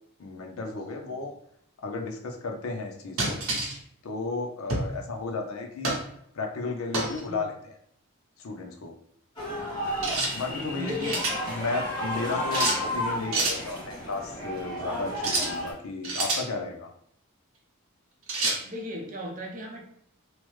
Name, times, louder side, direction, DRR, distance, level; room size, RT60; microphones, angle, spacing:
voice 1, 0.2-1.3 1.8-3.4 4.0-5.9 6.3-7.8 8.4-8.9 10.3-11.1 11.4-16.9, left 3 dB, 70° left, 3 dB, 0.5 m, -34 dB
sound 1, 3.2-3.8 4.7-4.9 5.8-6.1 6.9-7.2 10.0-10.3 10.8-11.4 12.5-12.8 13.3-13.6 15.2-15.5 16.0-16.5 18.3-18.6, right 2 dB, 65° right, 0.8 m, -28 dB
sound 2, 9.4-15.7, left 1 dB, 20° left, 0.9 m, -32 dB
voice 2, 10.0-11.2 18.4-19.8, left 1 dB, 40° right, -1 dB, 0.6 m, -37 dB
2.9 x 2.0 x 3.1 m, 0.69 s
head